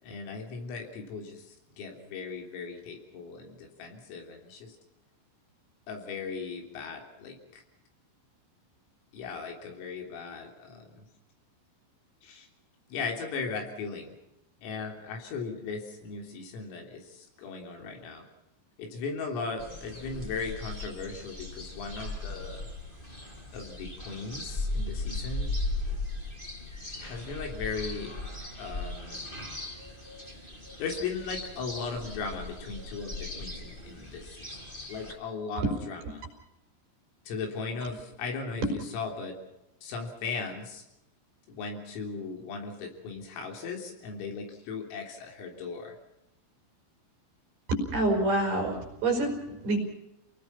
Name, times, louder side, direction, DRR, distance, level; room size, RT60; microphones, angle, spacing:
voice 1, 0.0-4.8 5.9-7.6 9.1-11.1 12.2-12.5 12.9-14.1 14.6-18.3 18.8-22.7 23.5-25.5 27.0-28.1 28.6-29.3 30.8-34.6 34.9-36.3 37.3-39.4 39.8-40.8 41.5-46.0, left 4 dB, 75° left, 3 dB, 6.0 m, -37 dB
sound 1, 19.6-35.1, left 2 dB, 10° left, 4.0 m, -37 dB
voice 2, 47.7-49.4 49.6-49.8, right 2 dB, 50° right, 3 dB, 6.0 m, -27 dB
29.0 x 19.5 x 5.9 m, 0.87 s
omnidirectional pair, 6.0 m